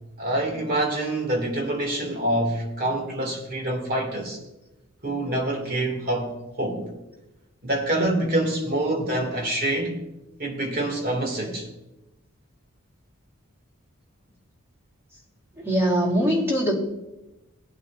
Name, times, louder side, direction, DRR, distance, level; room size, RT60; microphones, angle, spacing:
voice 1, 0.2-4.4 5.0-6.9 7.6-10.0 10.4-11.7, right 1 dB, 45° right, 2.1 m, -26 dB
voice 2, 15.6-16.7, equal, 10° right, 2.1 m, -22 dB
18.5 x 8.7 x 2.5 m
head